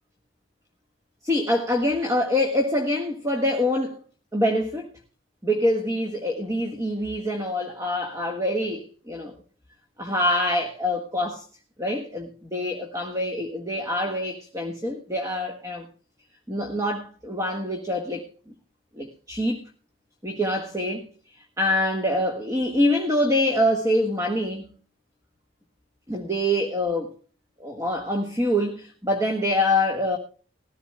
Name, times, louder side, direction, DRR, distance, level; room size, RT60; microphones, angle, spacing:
voice 1, 1.2-4.0 4.3-4.9 5.4-9.3 10.0-11.5 11.8-15.9 16.5-18.3 19.0-19.6 20.2-21.0 21.6-24.7 26.1-27.1 27.6-30.2, left 1 dB, 20° right, 1.5 m, -25 dB
20.5 x 14.0 x 2.2 m
head